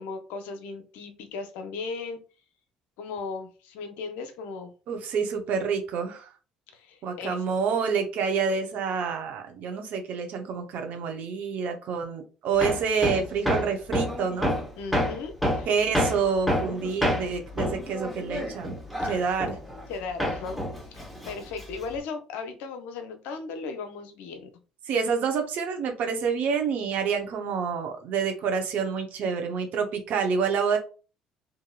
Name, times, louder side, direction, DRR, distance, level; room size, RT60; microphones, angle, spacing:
voice 1, 0.0-2.2 3.0-4.7 6.7-7.4 14.8-15.7 19.1-19.2 19.9-20.6 20.9-24.5, left 4 dB, 70° left, 7 dB, 0.5 m, -36 dB
voice 2, 4.9-6.3 7.0-14.5 15.7-18.8 19.0-19.6 24.9-30.8, right 6 dB, 60° right, 5 dB, 0.6 m, -28 dB
Hammer, 12.6-19.9 20.2-22.0, equal, ahead, 1.0 m, -28 dB
2.9 x 2.6 x 2.3 m, 0.35 s
hypercardioid pair, 55°, 3 cm